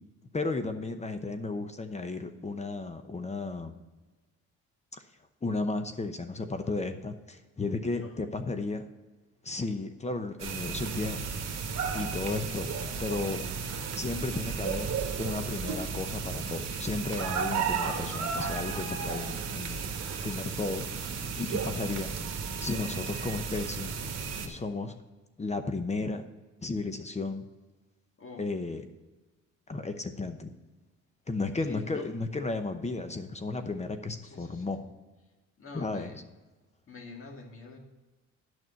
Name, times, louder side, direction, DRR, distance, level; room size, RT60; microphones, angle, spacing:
voice 1, 0.3-3.7 4.9-5.0 5.4-8.9 9.4-11.2 11.9-12.7 13.0-13.4 14.0-19.8 20.2-20.8 21.4-22.1 22.6-23.9 24.4-24.9 25.4-26.2 26.6-27.4 28.4-28.8 29.7-30.5 31.3-34.8 35.7-36.2, left 3 dB, 20° left, 8 dB, 0.8 m, -34 dB
sound 1, 10.4-24.5, right 5 dB, 60° right, 1.4 m, -34 dB
voice 2, 21.5-22.0 28.2-28.5 31.6-32.1 34.2-34.9 35.6-36.2 36.9-37.8, left 3 dB, 45° left, 2 dB, 2.0 m, -47 dB
9.2 x 6.2 x 5.5 m, 1.2 s
cardioid pair, 90°, 30 cm